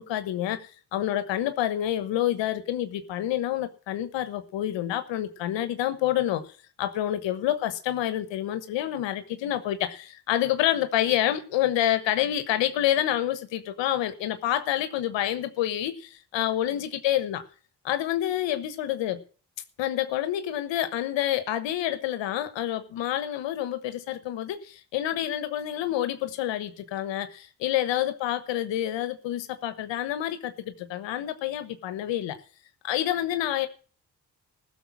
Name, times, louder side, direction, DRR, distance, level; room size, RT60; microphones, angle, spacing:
voice 1, 0.0-6.4 6.8-17.4 17.8-19.2 19.8-32.4 32.8-33.7, left 12 dB, 85° left, 1.2 m, -28 dB
15.0 x 6.9 x 8.4 m
supercardioid pair, 45°, 43 cm